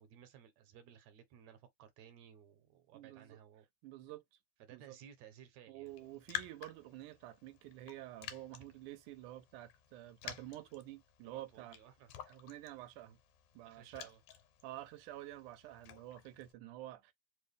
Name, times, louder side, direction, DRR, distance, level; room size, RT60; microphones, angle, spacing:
voice 1, 0.0-3.7 4.6-6.0 11.3-12.1 13.6-14.2, right 9 dB, 75° right, 2.0 m, -58 dB
voice 2, 2.9-3.4 3.8-4.4 4.7-5.0 5.7-11.8 12.3-13.2 13.6-14.1 14.6-17.1, right 15 dB, 90° right, 2.1 m, -49 dB
Raindrop, 5.9-16.5, left 12 dB, 90° left, 2.2 m, -51 dB
4.8 x 2.2 x 3.3 m
omnidirectional pair, 3.4 m